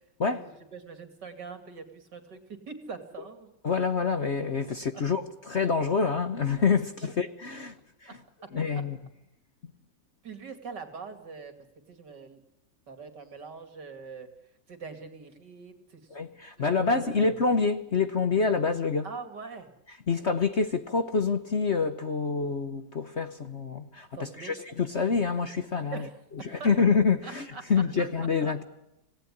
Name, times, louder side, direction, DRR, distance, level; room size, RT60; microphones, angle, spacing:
voice 1, 0.3-3.5 8.4-8.5 10.2-11.5 11.9-12.4 12.9-14.3 14.7-16.2 16.6-17.2 19.0-19.7 24.1-24.5 25.9-26.7 27.2-27.7 28.4-28.5, right 5 dB, 65° right, 3.0 m, -43 dB
voice 2, 3.6-7.7 8.0-8.2 8.5-9.0 16.1-19.0 20.1-26.0 26.4-28.6, left 5 dB, 45° left, 1.2 m, -27 dB
27.0 x 17.5 x 9.9 m
omnidirectional pair, 2.0 m